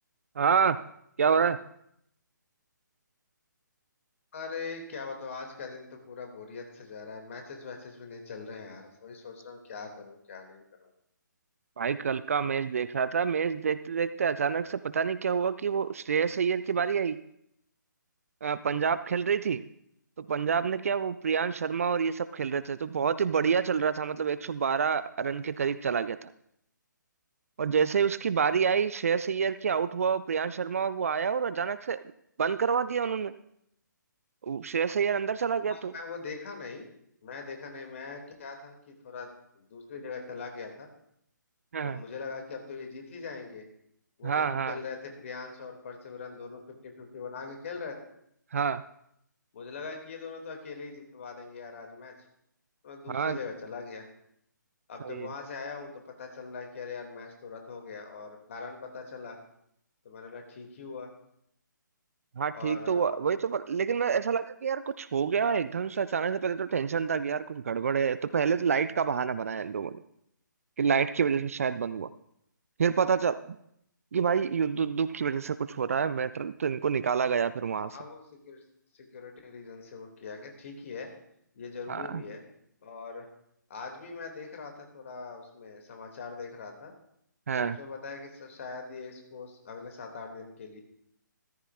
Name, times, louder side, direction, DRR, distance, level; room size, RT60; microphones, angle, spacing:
voice 1, 0.4-0.8 1.2-1.6 11.8-17.2 18.4-19.6 20.2-26.3 27.6-32.0 32.4-33.3 34.4-35.9 41.7-42.0 44.2-44.8 48.5-48.8 53.1-53.4 55.0-55.3 62.4-69.9 70.8-72.1 72.8-73.6 74.1-78.0 81.9-82.2 87.5-87.8, right 6 dB, 45° right, 14 dB, 0.4 m, -28 dB
voice 2, 4.3-10.9 35.7-36.9 37.2-39.3 39.6-40.9 41.8-43.6 44.2-48.0 49.5-52.1 52.8-54.1 54.9-55.9 56.2-59.4 60.0-61.1 62.5-63.2 77.9-78.6 78.9-81.1 81.5-82.4 82.8-83.3 83.7-86.9 87.6-90.8, left 4 dB, 40° left, 3 dB, 2.1 m, -41 dB
14.0 x 13.5 x 2.3 m, 0.73 s
figure-of-eight pair, 140°, 11 cm